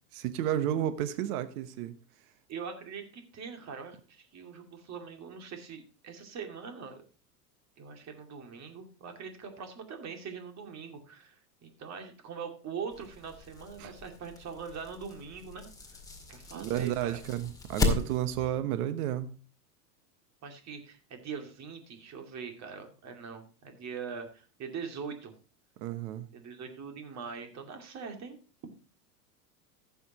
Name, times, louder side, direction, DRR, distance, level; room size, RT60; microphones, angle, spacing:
voice 1, 0.0-2.0 13.8-13.9 16.5-19.3 25.8-26.3, right 11 dB, 65° right, 1.2 m, -32 dB
voice 2, 2.5-7.0 7.8-16.0 16.3-17.2 20.4-25.3 26.3-28.4, right 6 dB, 35° right, 2.4 m, -42 dB
sound 1, 12.9-18.5, left 3 dB, 5° left, 2.1 m, -36 dB
15.0 x 7.1 x 2.9 m
hypercardioid pair, 110°, 48 cm